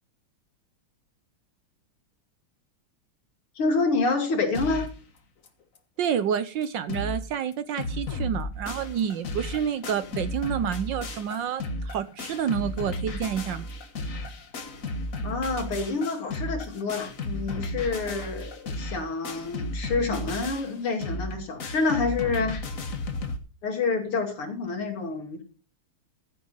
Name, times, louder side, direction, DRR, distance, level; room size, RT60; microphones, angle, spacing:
voice 1, 3.6-4.9 15.2-22.6 23.6-25.4, left 3 dB, 80° left, 4 dB, 3.4 m, -28 dB
sound 1, 4.5-5.0 5.5-5.6 5.8-5.9 6.3-6.4 6.6-7.2 7.5-23.4, left 2 dB, 40° left, 1.6 m, -34 dB
voice 2, 6.0-13.7, right 8 dB, 65° right, 13 dB, 1.4 m, -29 dB
14.5 x 7.8 x 5.5 m, 0.35 s
omnidirectional pair, 2.4 m